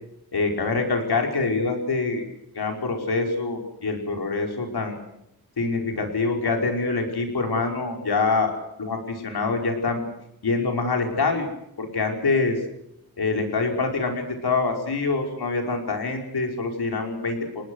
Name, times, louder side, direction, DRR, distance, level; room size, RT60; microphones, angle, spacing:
voice 1, 0.3-2.2 2.5-5.0 5.6-8.5 8.8-10.0 10.4-11.5 11.8-12.6 13.2-17.5, left 3 dB, 80° left, 3 dB, 5.4 m, -25 dB
29.0 x 19.5 x 6.4 m, 0.81 s
wide cardioid pair, 80°, 38 cm